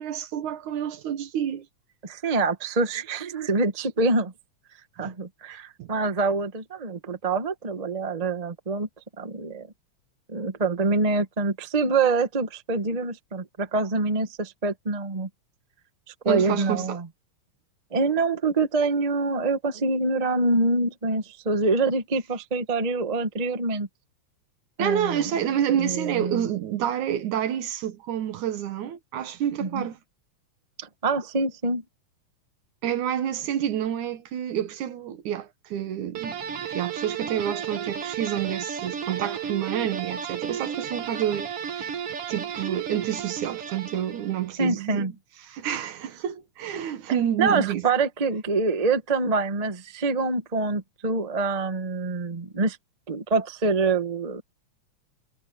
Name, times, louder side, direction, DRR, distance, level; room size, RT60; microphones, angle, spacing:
voice 1, 0.0-1.7 5.0-5.1 5.5-5.9 16.2-17.0 24.8-30.0 32.8-36.4 36.7-41.5 41.8-41.9 42.3-45.1 45.4-47.8, right 10 dB, 85° right, 2.9 m, -28 dB
voice 2, 2.0-4.3 5.0-8.9 9.2-9.7 10.3-15.3 16.2-17.1 17.9-23.9 24.8-25.3 25.8-26.4 29.6-29.9 30.8-31.8 44.6-45.1 47.4-52.8 53.1-54.4, right 3 dB, 30° right, 0.7 m, -25 dB
sound 1, 36.1-44.5, right 7 dB, 55° right, 2.2 m, -33 dB
omnidirectional pair, 3.4 m